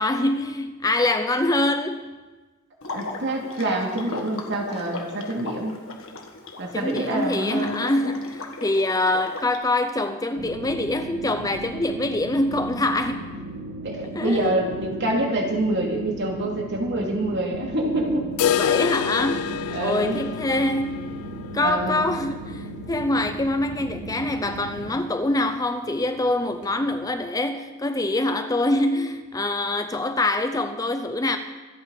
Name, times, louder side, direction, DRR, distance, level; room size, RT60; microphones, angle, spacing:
voice 1, 0.0-2.1 6.7-13.3 14.1-14.5 18.6-19.5 19.8-21.0 21.5-31.4, left 2 dB, 15° left, 0.6 m, -24 dB
Water / Liquid, 2.8-9.6, left 3 dB, 65° left, 1.7 m, -37 dB
voice 2, 2.9-5.8 6.6-7.9 13.8-18.3 19.7-20.2 21.6-22.0, right 1 dB, 55° right, 2.5 m, -26 dB
sound 1, 10.4-24.9, right 2 dB, 80° right, 1.9 m, -37 dB
sound 2, 18.4-24.2 24.5-24.6 25.0-25.1 25.6-25.7 26.5-26.6, left 9 dB, 90° left, 0.3 m, -28 dB
25.5 x 8.9 x 4.1 m
head